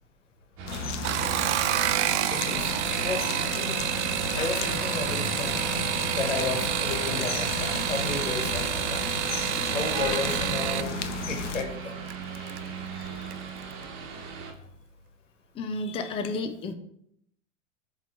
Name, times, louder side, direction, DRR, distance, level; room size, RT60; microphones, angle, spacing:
sound 1, 0.6-14.5, right 6 dB, 35° right, 1.3 m, -38 dB
sound 2, 0.7-11.6, left 6 dB, 70° left, 0.8 m, -34 dB
sound 3, 0.9-10.9 12.1-12.6 13.0-13.4 13.7-13.8, right 12 dB, 65° right, 0.5 m, -29 dB
voice 1, 2.3-3.8 4.3-5.5 6.1-9.1 9.7-12.0 16.3-16.4, left 4 dB, 90° left, 4 dB, 1.4 m, -33 dB
voice 2, 15.5-16.7, left 3 dB, 15° left, 7 dB, 0.5 m, -33 dB
8.0 x 3.2 x 4.1 m, 0.71 s
hypercardioid pair, 100°, 36 cm